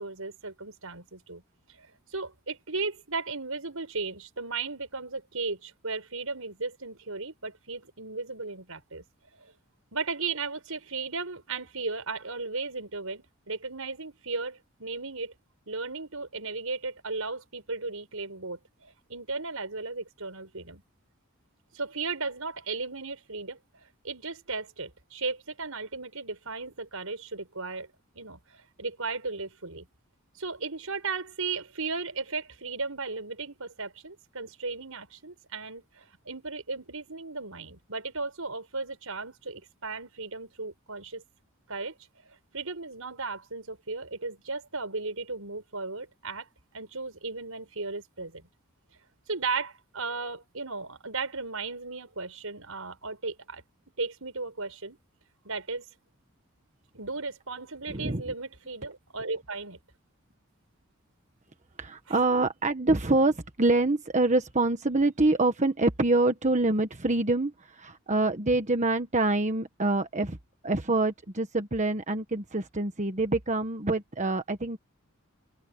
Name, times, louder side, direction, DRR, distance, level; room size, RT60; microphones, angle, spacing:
voice 1, 0.0-1.4 1.7-9.0 9.3-9.5 9.9-15.3 15.7-20.8 21.7-27.9 28.1-29.9 30.4-41.2 41.7-41.9 42.3-46.5 46.7-48.5 49.3-53.6 54.0-55.0 55.4-55.9 56.9-59.8 62.1-62.2, right 4 dB, 80° right, 5.5 m, -36 dB
voice 2, 57.9-58.2 61.8-70.4 70.6-74.8, right 2 dB, 35° right, 1.4 m, -26 dB
open air
head